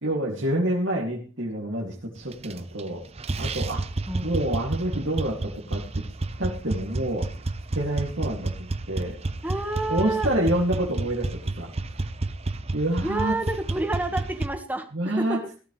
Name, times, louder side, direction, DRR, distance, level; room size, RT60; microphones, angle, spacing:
voice 1, 0.0-3.0 3.4-3.9 4.2-6.0 6.4-7.3 7.7-9.2 9.9-11.7 12.7-13.4 14.9-15.4, right 1 dB, 60° right, -3 dB, 2.5 m, -27 dB
sound 1, 2.3-2.9 3.2-14.5, right 2 dB, 30° right, 0.6 m, -30 dB
voice 2, 9.4-10.3 13.0-15.4, right 2 dB, 10° right, 6 dB, 1.5 m, -29 dB
17.5 x 13.0 x 3.3 m, 0.36 s
head